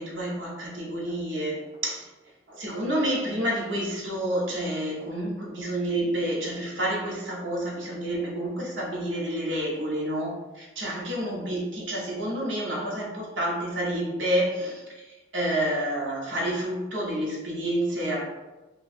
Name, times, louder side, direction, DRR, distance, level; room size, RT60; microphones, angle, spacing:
voice 1, 0.0-2.0 2.5-14.8 15.3-18.3, right 1 dB, 80° right, -4 dB, 0.9 m, -29 dB
2.9 x 2.3 x 4.1 m, 1.1 s
head